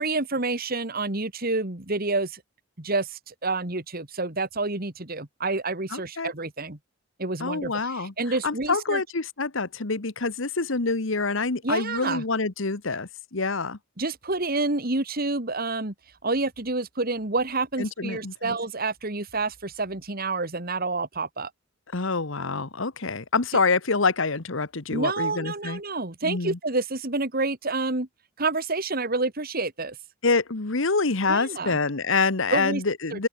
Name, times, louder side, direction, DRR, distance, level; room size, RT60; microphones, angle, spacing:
voice 1, 0.0-2.4 2.8-6.8 7.2-9.0 11.6-12.2 14.0-15.9 16.2-21.5 24.9-28.1 28.4-30.0 31.3-31.8 32.5-32.8 33.1-33.3, right 3 dB, 45° right, 2.3 m, -28 dB
voice 2, 5.9-6.3 7.4-8.1 8.4-13.8 17.8-18.6 21.9-25.8 26.2-26.6 30.2-33.3, left 4 dB, 65° left, 1.3 m, -26 dB
open air
head